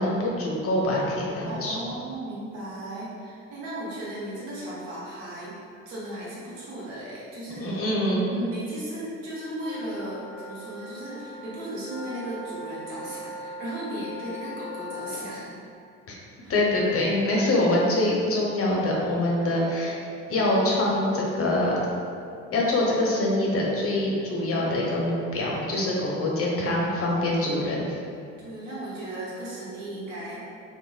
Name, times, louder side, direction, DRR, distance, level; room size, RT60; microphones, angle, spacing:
voice 1, 0.0-1.8 7.6-8.3 16.1-16.2 16.5-20.0 20.3-21.8 22.5-27.9, left 1 dB, 35° left, -3 dB, 0.6 m, -24 dB
voice 2, 1.5-5.5 5.9-7.8 8.3-15.5 16.4-16.6 28.4-30.4, right 1 dB, 80° right, -8 dB, 0.9 m, -36 dB
sound 1, 9.6-15.2, left 2 dB, 10° left, 1.4 m, -40 dB
3.0 x 2.2 x 2.2 m, 2.5 s
hypercardioid pair, 55°, 38 cm